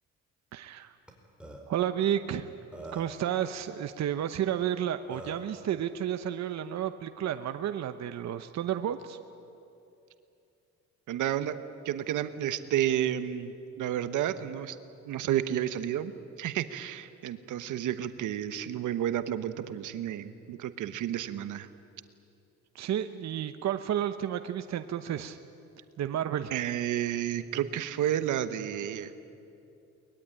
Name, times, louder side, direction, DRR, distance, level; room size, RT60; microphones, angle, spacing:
voice 1, 0.5-0.9 1.7-2.5 2.9-9.2 22.7-25.4 26.0-26.5, right 10 dB, 60° right, 9 dB, 0.9 m, -31 dB
Burping eructation, 1.1-1.2 1.4-1.6 2.4-2.5 2.7-3.2 4.6-4.7 5.1-5.5, right 1 dB, 5° right, 4.7 m, -43 dB
voice 2, 11.1-11.5 11.8-14.8 15.1-16.1 16.4-21.7 26.5-29.1, right 11 dB, 80° right, 11 dB, 1.2 m, -31 dB
23.0 x 21.0 x 9.9 m, 2.7 s
cardioid pair, 90°, 30 cm